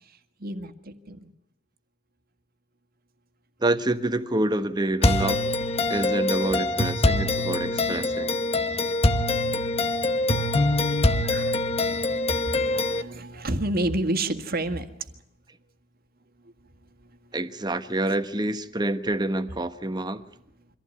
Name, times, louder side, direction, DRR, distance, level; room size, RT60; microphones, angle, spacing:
voice 1, 0.4-1.3 11.2-11.6 12.1-14.9, right 1 dB, 50° right, 1.9 m, -30 dB
voice 2, 3.6-5.4 5.9-8.4 17.3-20.3, right 1 dB, 20° right, 1.2 m, -27 dB
sound 1, 5.0-13.0, left 2 dB, 30° left, 1.1 m, -24 dB
25.0 x 15.5 x 9.6 m
head